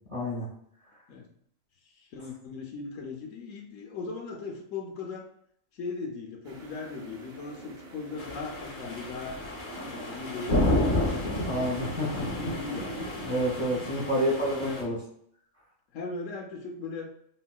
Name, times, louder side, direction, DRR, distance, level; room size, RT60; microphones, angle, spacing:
voice 1, 0.1-0.5 11.5-12.3 13.2-15.0, equal, 35° right, -5 dB, 1.1 m, -28 dB
voice 2, 2.0-5.3 5.7-9.4 9.8-11.7 12.1-13.3 14.1-14.8 15.9-17.2, left 4 dB, 75° left, 1 dB, 0.9 m, -39 dB
sound 1, 6.4-13.7, right 1 dB, 90° right, 1.0 m, -45 dB
sound 2, 8.2-14.8, left 1 dB, 45° left, 0.7 m, -31 dB
4.2 x 2.1 x 2.2 m, 0.68 s
omnidirectional pair, 1.4 m